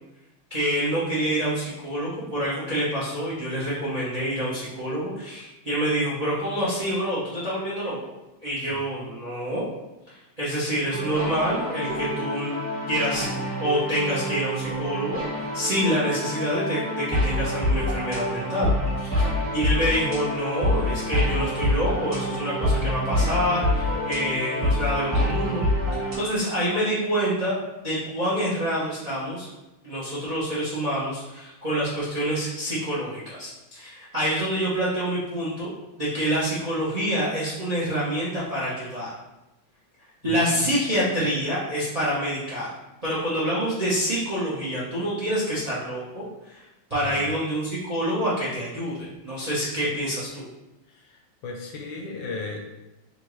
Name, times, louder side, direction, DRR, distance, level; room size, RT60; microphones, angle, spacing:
voice 1, 0.5-8.0 8.4-9.6 10.1-12.6 12.9-13.3 13.6-15.2 15.5-18.7 19.0-25.6 26.2-27.6 27.8-29.5 29.8-35.7 36.0-39.1 40.2-42.7 43.0-46.6 46.9-50.4, equal, 75° right, -8 dB, 0.3 m, -27 dB
sound 1, 10.9-26.2, left 1 dB, 45° right, 1.6 m, -26 dB
voice 2, 40.2-41.0 47.0-47.2 50.9-52.6, left 3 dB, 75° left, 1 dB, 1.2 m, -36 dB
4.3 x 2.5 x 3.0 m, 0.98 s
omnidirectional pair, 2.3 m